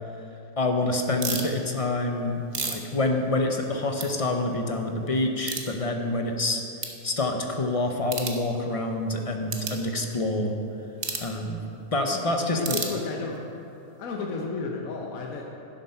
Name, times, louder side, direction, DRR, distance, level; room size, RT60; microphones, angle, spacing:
voice 1, 0.6-6.6 7.0-10.5 11.2-11.6 11.9-12.8, left 2 dB, 35° left, 3 dB, 0.5 m, -27 dB
sound 1, 1.2-1.5 2.2-3.7 4.0-4.1 4.5-4.6 5.4-5.7 6.3-6.4 6.8-7.0 8.0-8.4 9.5-9.8 11.0-11.3 12.6-13.4, right 4 dB, 40° right, 1.0 m, -32 dB
voice 2, 12.5-13.4 13.8-15.4, left 4 dB, 75° left, 0 dB, 1.3 m, -33 dB
11.0 x 7.6 x 5.5 m, 2.8 s
omnidirectional pair, 1.5 m